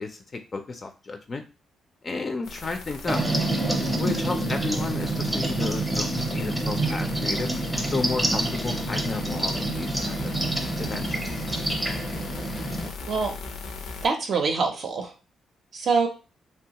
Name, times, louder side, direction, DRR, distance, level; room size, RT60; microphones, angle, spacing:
voice 1, 0.0-1.4 2.0-3.2 4.0-7.5 7.9-10.3 10.8-11.5, left 3 dB, 35° left, 5 dB, 0.4 m, -32 dB
sound 1, 2.4-14.1, left 4 dB, 90° left, 0.5 m, -38 dB
sound 2, 3.1-12.9, right 2 dB, 10° right, 0.6 m, -27 dB
voice 2, 13.0-13.3 14.0-15.1 15.7-16.1, right 4 dB, 55° right, 3 dB, 0.5 m, -25 dB
3.0 x 2.2 x 2.8 m, 0.31 s
cardioid pair, 105°, 0 cm